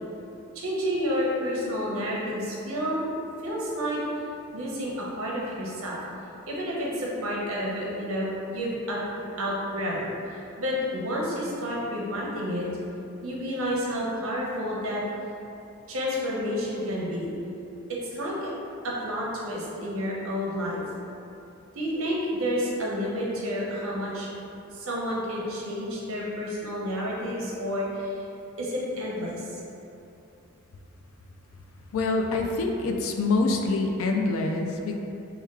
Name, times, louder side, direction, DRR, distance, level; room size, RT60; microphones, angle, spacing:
voice 1, 0.5-3.1 3.4-4.0 4.5-6.0 6.4-10.1 10.6-12.7 13.2-15.0 15.9-17.3 18.1-18.5 18.8-20.8 21.7-24.3 24.7-28.1 28.6-29.4, equal, 65° right, -4 dB, 0.7 m, -30 dB
voice 2, 31.9-35.0, left 3 dB, 65° left, 3 dB, 0.3 m, -25 dB
3.4 x 2.2 x 3.2 m, 2.8 s
head